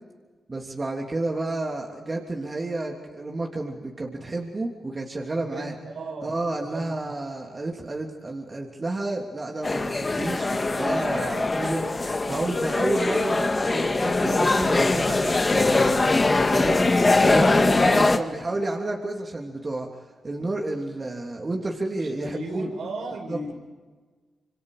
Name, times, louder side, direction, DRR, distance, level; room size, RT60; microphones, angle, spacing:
voice 1, 0.5-5.7 6.2-12.0 12.3-16.0 16.5-16.9 17.2-19.9 20.2-22.7 23.3-23.4, right 2 dB, 40° right, 0 dB, 3.2 m, -30 dB
voice 2, 5.4-6.3 6.6-7.1 17.0-18.4 22.0-23.5, right 2 dB, 80° right, 1 dB, 6.0 m, -36 dB
sound 1, 9.6-18.2, left 3 dB, 35° left, 1.9 m, -22 dB
27.0 x 24.5 x 5.0 m, 1.4 s
supercardioid pair, 50°, 0 cm